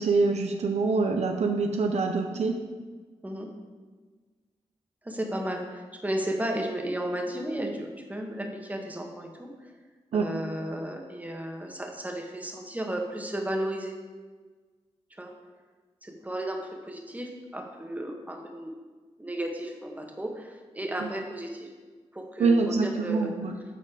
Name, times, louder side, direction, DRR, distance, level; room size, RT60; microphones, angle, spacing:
voice 1, 0.0-2.6 10.1-10.3 21.0-21.1 22.4-23.5, right 4 dB, 70° right, 4 dB, 0.6 m, -25 dB
voice 2, 5.0-9.5 10.1-13.9 15.2-15.3 16.0-18.7 19.2-21.7 22.1-23.3, right 1 dB, 15° right, 1 dB, 1.4 m, -34 dB
7.6 x 4.2 x 4.8 m, 1.4 s
cardioid pair, 45°, 12 cm